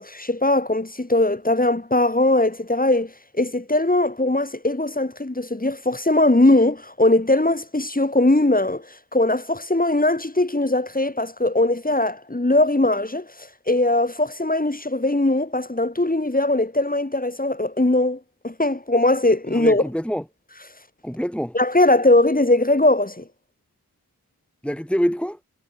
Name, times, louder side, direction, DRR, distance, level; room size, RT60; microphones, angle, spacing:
voice 1, 0.0-8.9 9.1-13.3 13.7-19.8 21.5-23.2, left 2 dB, 25° left, 4.4 m, -20 dB
voice 2, 19.5-20.2 21.0-21.5 24.6-25.4, equal, 5° left, 2.4 m, -25 dB
cardioid pair, 50°, 34 cm